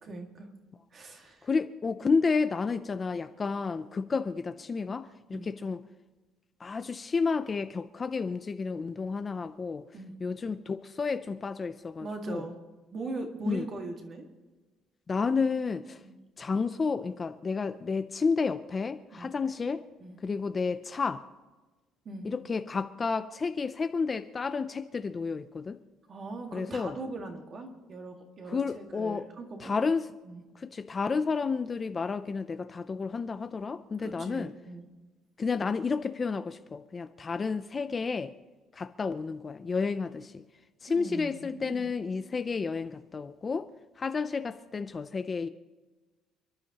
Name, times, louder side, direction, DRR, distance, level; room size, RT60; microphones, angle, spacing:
voice 1, 0.0-0.5 0.9-1.5 5.3-5.5 9.9-10.1 12.0-12.6 12.9-14.3 16.0-16.1 19.1-19.3 20.0-20.2 22.1-22.3 26.1-29.8 30.2-30.4 34.0-34.8 40.9-41.9, right 2 dB, 30° right, 3 dB, 1.8 m, -40 dB
voice 2, 1.4-5.8 6.6-9.9 10.2-12.5 13.4-13.7 15.1-16.0 16.4-19.8 20.2-21.2 22.2-25.8 26.5-27.0 28.5-29.3 29.6-30.1 30.6-34.5 35.4-38.3 38.7-40.4 40.8-43.7 44.0-45.5, left 4 dB, 20° left, 10 dB, 0.4 m, -31 dB
29.5 x 11.5 x 2.9 m, 1.2 s
cardioid pair, 170°, 0 cm